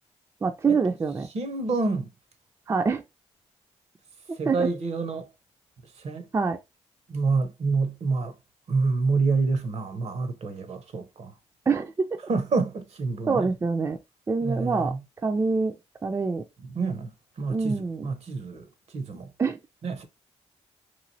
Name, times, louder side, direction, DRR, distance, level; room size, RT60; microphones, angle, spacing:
voice 1, 0.4-1.3 2.7-3.0 4.5-4.7 6.3-6.6 11.7-12.2 13.3-14.0 14.3-14.9 15.2-15.7 16.0-16.4 17.5-18.1 19.4-19.6, right 4 dB, 25° right, 0.3 m, -25 dB
voice 2, 1.3-2.1 4.4-5.3 6.0-6.3 7.1-8.3 8.7-11.3 12.3-13.4 14.4-15.0 16.7-17.1 17.4-18.7 18.9-19.3 19.8-20.0, right 4 dB, 60° right, 0.6 m, -27 dB
3.0 x 2.5 x 2.6 m
cardioid pair, 60°, 12 cm